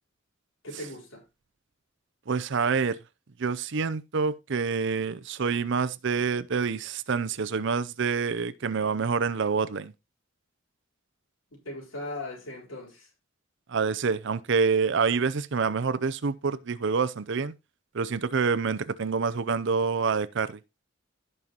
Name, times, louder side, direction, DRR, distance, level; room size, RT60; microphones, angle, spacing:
voice 1, 0.6-1.3 11.5-13.1, left 2 dB, 65° left, 4.2 m, -39 dB
voice 2, 2.3-3.0 3.4-9.9 13.7-17.5 17.9-20.6, right 5 dB, 60° right, 0.6 m, -27 dB
16.0 x 5.5 x 2.9 m
head